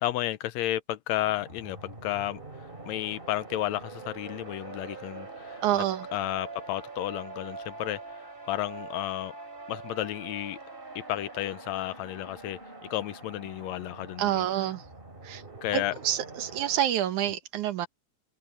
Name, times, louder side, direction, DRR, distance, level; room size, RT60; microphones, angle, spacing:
voice 1, 0.0-2.4 2.9-5.8 6.1-8.0 8.5-9.3 9.7-10.6 11.0-12.6 12.9-14.4 15.6-15.9, left 14 dB, 75° left, 1.8 m, -32 dB
sound 1, 1.1-16.8, right 3 dB, 20° right, 3.2 m, -44 dB
voice 2, 5.6-6.1 14.2-14.9 15.2-15.4 15.7-17.9, right 11 dB, 85° right, 2.8 m, -28 dB
omnidirectional pair, 3.4 m